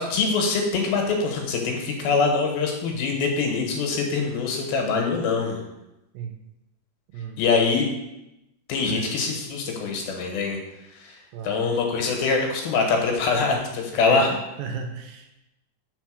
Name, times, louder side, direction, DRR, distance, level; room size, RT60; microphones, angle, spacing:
voice 1, 0.0-5.6 7.4-7.9 8.7-10.6 10.9-14.4, left 4 dB, 90° left, 1 dB, 3.0 m, -24 dB
voice 2, 11.3-11.8 14.0-14.3 14.6-15.4, right 6 dB, 85° right, 5 dB, 2.3 m, -34 dB
5.2 x 4.5 x 6.2 m, 0.92 s
omnidirectional pair, 4.2 m